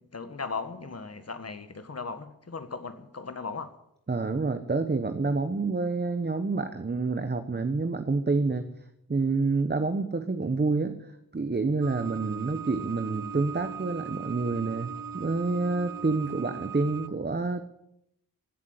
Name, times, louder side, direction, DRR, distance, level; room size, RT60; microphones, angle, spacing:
voice 1, 0.0-3.8, left 4 dB, 45° left, 10 dB, 1.8 m, -37 dB
voice 2, 4.1-8.6 9.1-17.6, right 3 dB, 30° right, 8 dB, 1.1 m, -28 dB
sound 1, 11.8-17.1, right 7 dB, 75° right, 0.7 m, -39 dB
16.0 x 7.4 x 9.8 m, 0.81 s
cardioid pair, 60°, 35 cm